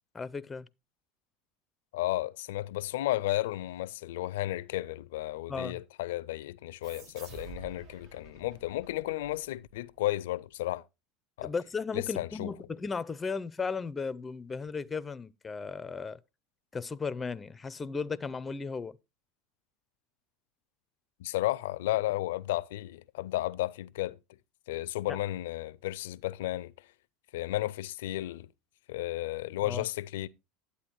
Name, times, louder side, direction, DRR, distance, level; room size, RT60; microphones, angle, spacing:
voice 1, 0.1-0.7 5.5-5.8 11.4-16.2 16.7-19.0 25.1-25.2 29.6-29.9, left 4 dB, 20° left, 0.5 m, -35 dB
voice 2, 1.9-10.8 11.4-11.5 11.9-12.5 21.2-24.2 24.7-26.7 27.3-28.5 28.9-30.3, left 16 dB, 75° left, 0.4 m, -33 dB
sound 1, 6.8-10.0, right 6 dB, 65° right, 2.0 m, -50 dB
11.5 x 8.3 x 3.0 m
hypercardioid pair, 85°, 0 cm